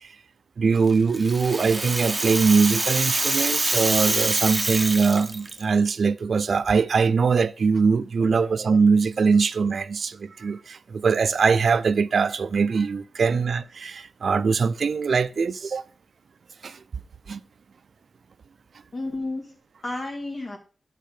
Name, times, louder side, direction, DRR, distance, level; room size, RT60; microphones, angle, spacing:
voice 1, 0.6-15.8 16.6-16.8 17.3-17.4, right 5 dB, 65° right, 0.3 m, -22 dB
Rattle (instrument), 0.9-5.6, right 2 dB, 20° right, 0.8 m, -26 dB
voice 2, 18.9-19.6 19.8-20.6, left 2 dB, 45° left, 2.1 m, -33 dB
10.0 x 3.6 x 6.3 m
wide cardioid pair, 165°, 0 cm